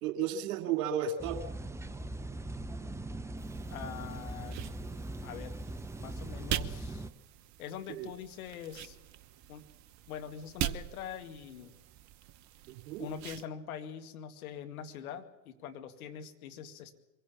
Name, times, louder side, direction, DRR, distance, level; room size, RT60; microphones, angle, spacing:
voice 1, 0.0-1.4 7.9-8.1 12.7-13.1, right 8 dB, 55° right, 7 dB, 2.6 m, -33 dB
sound 1, 1.2-7.1, right 2 dB, 5° right, 0.6 m, -40 dB
sound 2, 3.4-13.5, right 12 dB, 35° right, 1.0 m, -42 dB
voice 2, 3.7-4.6 5.2-5.6 6.0-7.1 7.6-9.0 9.5-9.6 10.1-11.7 13.0-17.0, left 8 dB, 60° left, 7 dB, 2.2 m, -43 dB
23.5 x 16.5 x 7.2 m, 1.0 s
figure-of-eight pair, 85°, 48 cm